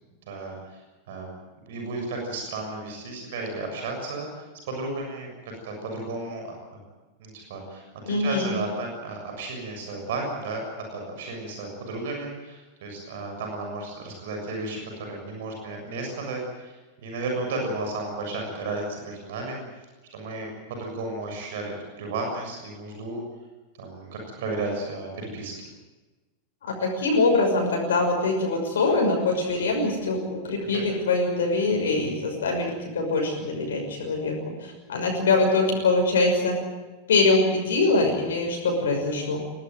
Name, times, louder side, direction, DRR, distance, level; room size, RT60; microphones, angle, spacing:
voice 1, 0.3-0.6 1.1-1.3 1.7-4.3 4.7-5.3 5.6-6.4 7.2-10.6 10.9-14.8 15.1-19.6 20.1-23.2 23.8-25.5 30.7-30.9, right 2 dB, 55° right, 2 dB, 6.9 m, -33 dB
voice 2, 8.0-8.5 26.7-34.3 34.6-36.6 37.1-39.4, left 3 dB, 65° left, 1 dB, 6.0 m, -23 dB
22.0 x 18.5 x 9.3 m, 1.2 s
figure-of-eight pair, 90°, 0 cm